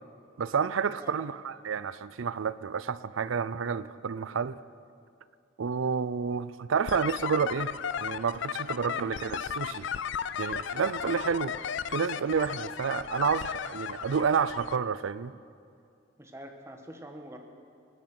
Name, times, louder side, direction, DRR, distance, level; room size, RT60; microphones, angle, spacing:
voice 1, 0.4-4.6 5.6-9.9 10.4-15.3, right 6 dB, 80° right, 0.5 m, -30 dB
sound 1, 6.9-14.8, left 7 dB, 65° left, 0.4 m, -35 dB
voice 2, 16.2-17.4, right 1 dB, 15° right, 1.2 m, -45 dB
18.5 x 10.5 x 5.9 m
head